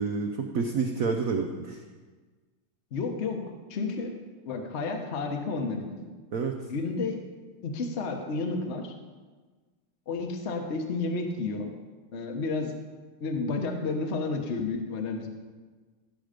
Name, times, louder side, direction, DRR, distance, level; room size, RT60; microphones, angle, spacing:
voice 1, 0.0-1.8 6.3-6.5, right 5 dB, 60° right, 3 dB, 0.9 m, -28 dB
voice 2, 2.9-4.1 4.5-6.1 6.7-7.2 7.6-8.9 10.1-11.7 12.1-12.7 13.2-15.3, left 3 dB, 40° left, 4 dB, 1.1 m, -31 dB
15.0 x 6.4 x 5.1 m, 1.4 s
omnidirectional pair, 2.3 m